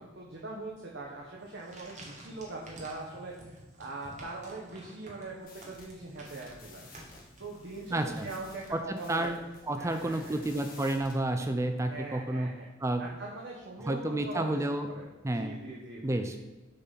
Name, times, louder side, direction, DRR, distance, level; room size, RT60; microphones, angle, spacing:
voice 1, 0.0-6.8 7.4-9.4 9.7-10.4 11.9-12.7 13.0-15.1 15.3-16.2, right 2 dB, 55° right, -2 dB, 0.9 m, -42 dB
sound 1, 1.4-8.0, right 1 dB, 35° right, 1.4 m, -51 dB
sound 2, 5.4-11.2, left 2 dB, 45° left, 1.4 m, -53 dB
voice 2, 7.9-8.3 8.7-9.4 9.7-12.5 12.8-13.0 13.8-14.9 15.2-15.6 16.0-16.4, right 1 dB, 15° right, 7 dB, 0.4 m, -30 dB
6.6 x 3.9 x 5.8 m, 1.1 s
head